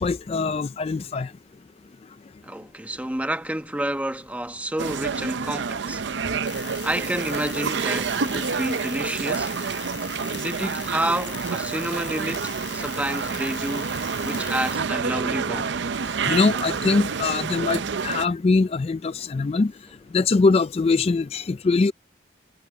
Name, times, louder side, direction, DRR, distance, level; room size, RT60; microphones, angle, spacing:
voice 1, 0.0-1.3 16.3-19.7 20.1-21.9, left 3 dB, 35° left, 0.3 m, -22 dB
voice 2, 2.4-6.0 6.8-9.5 10.4-15.7, right 1 dB, 10° right, 1.1 m, -29 dB
sound 1, 4.8-18.3, right 5 dB, 75° right, 0.6 m, -28 dB
sound 2, 6.4-14.8, left 10 dB, 75° left, 4.7 m, -40 dB
head